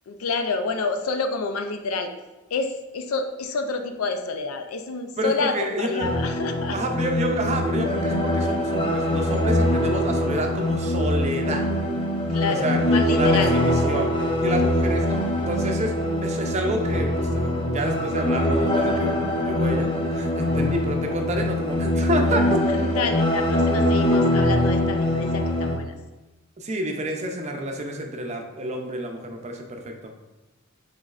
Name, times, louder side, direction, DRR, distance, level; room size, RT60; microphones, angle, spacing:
voice 1, 0.1-2.1 2.5-6.8 12.3-13.5 22.6-26.0, left 4 dB, 90° left, 7 dB, 0.5 m, -28 dB
voice 2, 5.2-6.1 6.7-11.6 12.5-14.1 14.4-15.9 16.2-22.6 26.6-30.1, right 1 dB, 30° right, 3 dB, 0.5 m, -29 dB
sound 1, 6.0-25.8, left 1 dB, 25° left, 0.5 m, -23 dB
5.2 x 3.9 x 2.4 m, 1.1 s
head